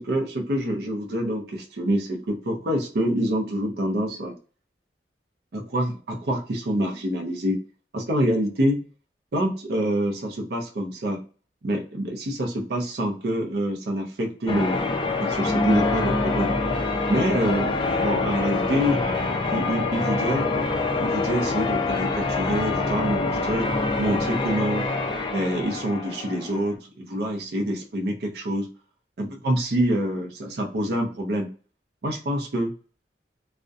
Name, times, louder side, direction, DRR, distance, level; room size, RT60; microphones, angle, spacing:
voice 1, 0.0-4.4 5.5-7.6 7.9-8.8 9.3-11.2 11.6-14.8 15.2-16.5 17.1-19.0 19.5-20.7 21.0-23.7 24.0-24.9 25.3-28.7 29.2-31.5 32.0-32.7, equal, 60° right, 1 dB, 0.5 m, -26 dB
Church bell, 14.5-26.7, left 3 dB, 25° left, 0.3 m, -25 dB
2.6 x 2.1 x 2.3 m, 0.38 s
head